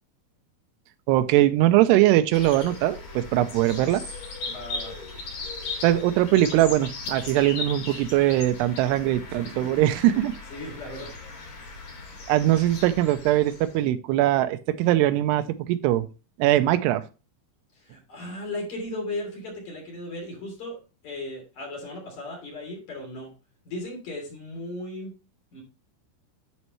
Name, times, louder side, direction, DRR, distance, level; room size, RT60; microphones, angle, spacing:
voice 1, 1.1-4.0 5.8-10.3 12.3-16.1 16.4-17.0, right 14 dB, 85° right, 11 dB, 2.7 m, -21 dB
sound 1, 2.3-13.8, left 3 dB, 65° left, 5.1 m, -38 dB
voice 2, 4.4-5.0 9.4-10.1 10.5-11.1 17.7-20.8 21.0-23.3 23.7-25.1 25.5-25.6, left 1 dB, 45° left, -1 dB, 4.2 m, -36 dB
11.0 x 5.4 x 3.1 m, 0.32 s
omnidirectional pair, 4.7 m